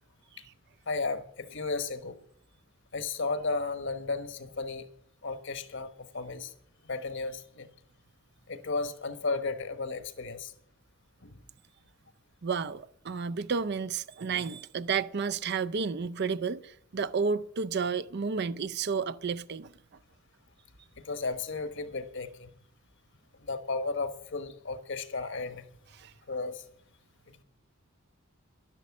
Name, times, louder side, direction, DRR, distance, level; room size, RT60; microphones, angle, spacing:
voice 1, 0.9-2.2 2.9-4.9 5.2-6.5 6.8-7.7 8.5-10.5 11.2-11.4 21.0-22.5 23.4-25.6 26.3-26.6, left 3 dB, 60° left, 1.2 m, -34 dB
voice 2, 12.4-19.7 26.0-26.1, right 5 dB, 50° right, 0.5 m, -31 dB
11.5 x 11.0 x 7.2 m
head